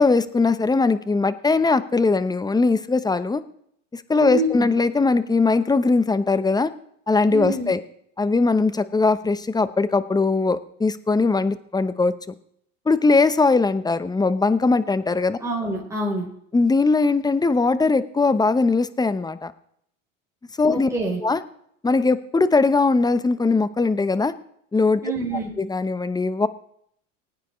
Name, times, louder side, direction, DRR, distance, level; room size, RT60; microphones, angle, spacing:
voice 1, 0.0-3.4 3.9-6.7 7.1-7.8 8.2-12.1 12.9-15.4 16.5-19.5 20.6-20.9 21.2-21.4 21.8-24.3 24.7-25.0 25.6-26.5, left 3 dB, 10° left, 13 dB, 0.8 m, -20 dB
voice 2, 4.1-4.7 7.3-7.7 15.4-16.3 20.7-21.2 25.0-25.5, right 1 dB, 10° right, -3 dB, 3.9 m, -26 dB
20.0 x 9.5 x 3.2 m, 0.69 s
hypercardioid pair, 95°, 38 cm